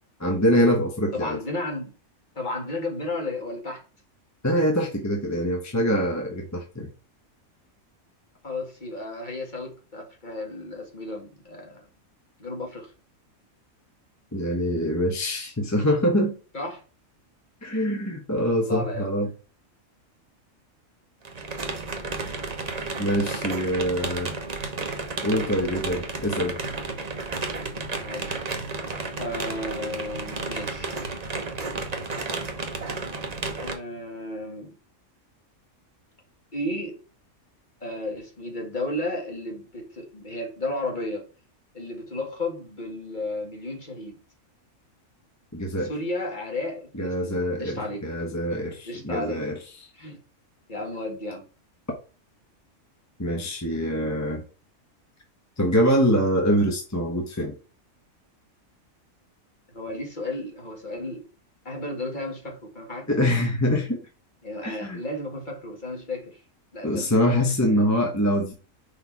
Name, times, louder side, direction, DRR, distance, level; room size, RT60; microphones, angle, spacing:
voice 1, 0.2-1.4 4.4-6.9 14.3-16.4 17.6-19.3 23.0-24.4 25.2-26.6 45.5-45.9 46.9-49.6 53.2-54.4 55.6-57.5 63.1-64.0 64.6-65.0 66.8-68.5, equal, 15° left, 1.0 m, -24 dB
voice 2, 1.1-1.9 2.4-3.8 8.4-11.8 12.4-12.9 16.5-16.8 18.6-19.1 28.0-28.5 29.2-30.9 33.6-34.8 36.5-37.0 37.8-41.3 41.7-44.2 45.8-48.0 48.8-49.4 49.9-50.2 50.7-51.4 59.7-61.3 61.7-63.1 64.4-66.4 66.7-67.3, left 2 dB, 35° left, 2.0 m, -33 dB
sound 1, 21.2-33.7, right 3 dB, 35° right, 0.9 m, -32 dB
5.1 x 4.4 x 4.7 m
omnidirectional pair, 1.4 m